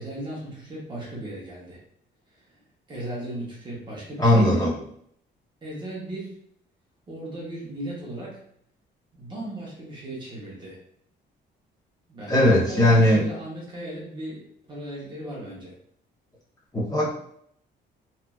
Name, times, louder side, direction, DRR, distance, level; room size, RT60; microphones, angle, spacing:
voice 1, 0.0-1.8 2.3-2.4 2.9-4.6 5.6-6.3 7.1-8.4 9.1-10.8 12.1-15.7, right 1 dB, 25° right, -5 dB, 0.7 m, -36 dB
voice 2, 4.2-4.7 12.3-13.2 16.7-17.1, left 1 dB, 20° left, -7 dB, 0.8 m, -18 dB
3.0 x 2.3 x 2.2 m, 0.67 s
cardioid pair, 175°, 19 cm